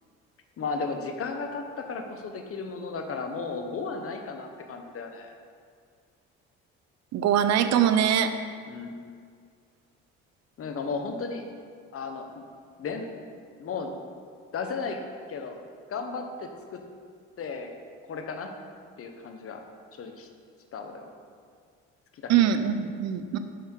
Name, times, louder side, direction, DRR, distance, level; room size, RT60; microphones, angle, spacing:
voice 1, 0.6-5.3 8.7-9.0 10.6-11.4 11.9-12.4 12.8-13.2 13.6-14.0 14.5-15.0 15.3-16.8 17.4-17.8 18.1-18.5 19.0-19.6 19.9-20.3 20.7-21.1 22.1-22.3 23.3-23.4, left 4 dB, 50° left, 5 dB, 1.1 m, -35 dB
voice 2, 7.1-8.3 22.3-23.4, right 9 dB, 65° right, 10 dB, 0.6 m, -22 dB
8.3 x 5.8 x 4.5 m, 2.1 s
supercardioid pair, 75°, 29 cm